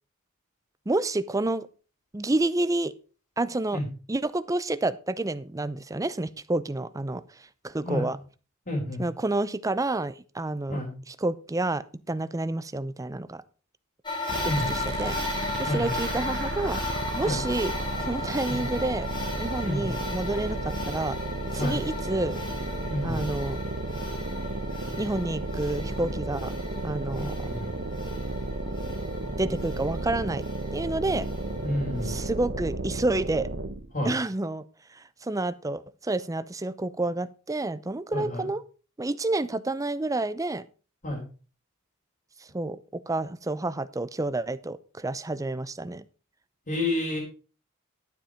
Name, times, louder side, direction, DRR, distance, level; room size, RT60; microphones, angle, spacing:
voice 1, 0.9-1.7 2.1-2.9 3.4-3.8 4.1-8.2 9.0-10.8 11.1-13.4 14.4-16.8 17.2-19.1 19.4-21.2 21.5-22.4 23.0-23.6 25.0-26.6 26.8-27.5 29.3-30.5 30.7-31.3 32.0-33.5 34.0-34.6 34.9-38.6 39.0-40.6 42.4-46.0, right 2 dB, 15° right, 15 dB, 0.6 m, -29 dB
voice 2, 8.7-9.0 10.7-10.9 14.4-14.7 15.7-15.9 17.2-17.4 18.5-18.6 19.6-19.9 21.6-21.8 22.9-23.3 27.2-27.8 31.6-32.2 33.9-34.1 38.1-38.5 41.0-41.2 46.7-47.2, left 1 dB, 40° left, -4 dB, 4.1 m, -29 dB
sound 1, 14.0-32.3, left 2 dB, 20° left, 3.4 m, -36 dB
sound 2, 14.3-33.9, right 2 dB, 50° right, 1.1 m, -33 dB
12.0 x 7.3 x 5.0 m, 0.36 s
head